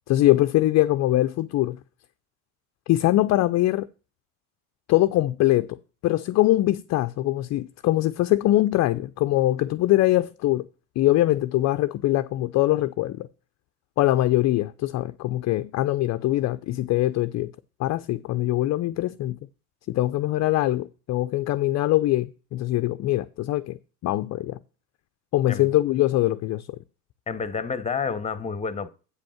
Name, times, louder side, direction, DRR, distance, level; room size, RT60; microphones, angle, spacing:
voice 1, 0.1-1.8 2.9-3.9 4.9-5.8 6.0-10.7 11.0-13.3 14.0-17.5 17.8-19.4 19.9-24.6 25.3-26.8, left 15 dB, 40° left, 0.5 m, -22 dB
voice 2, 27.3-28.9, left 5 dB, 15° left, 0.9 m, -29 dB
8.4 x 5.2 x 5.7 m
hypercardioid pair, 90°, 45 cm